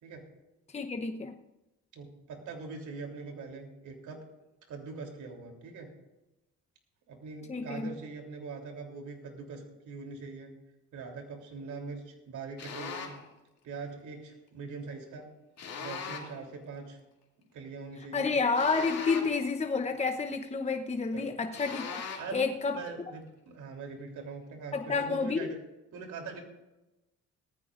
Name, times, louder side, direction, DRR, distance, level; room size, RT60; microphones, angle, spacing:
voice 1, 0.7-1.4 7.5-8.0 18.1-22.8 24.7-25.5, left 4 dB, 20° left, 0.9 m, -30 dB
voice 2, 1.9-4.2 4.7-5.9 7.1-10.5 10.9-13.1 13.6-15.3 15.8-17.0 17.5-18.3 21.1-21.3 22.2-22.4 22.7-25.6 25.9-26.4, right 4 dB, 75° right, 3.5 m, -42 dB
sound 1, 12.6-13.3 15.6-16.4 18.5-19.5 21.5-22.4, left 5 dB, 55° left, 2.7 m, -40 dB
18.5 x 14.5 x 2.6 m
cardioid pair, 90°, 30 cm